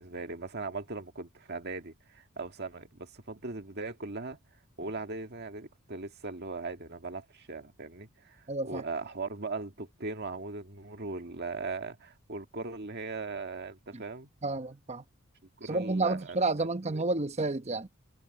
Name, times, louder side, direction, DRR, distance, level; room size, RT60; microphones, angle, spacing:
voice 1, 0.0-4.4 4.8-14.3 15.6-17.0, right 3 dB, 50° right, 1.9 m, -39 dB
voice 2, 8.5-8.8 13.9-14.0 14.4-15.0 15.6-17.9, right 3 dB, 30° right, 0.9 m, -30 dB
head